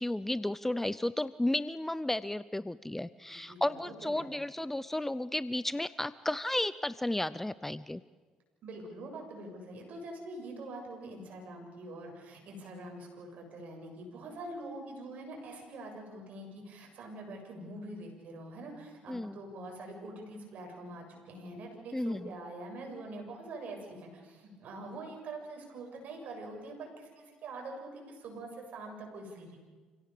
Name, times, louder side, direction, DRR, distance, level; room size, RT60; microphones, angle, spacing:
voice 1, 0.0-8.0 19.1-19.4 21.9-22.3, left 1 dB, 10° left, 17 dB, 0.7 m, -33 dB
voice 2, 3.3-4.3 8.6-29.6, right 2 dB, 65° right, 2 dB, 7.2 m, -44 dB
27.5 x 17.0 x 6.9 m, 1.4 s
supercardioid pair, 65°, 3 cm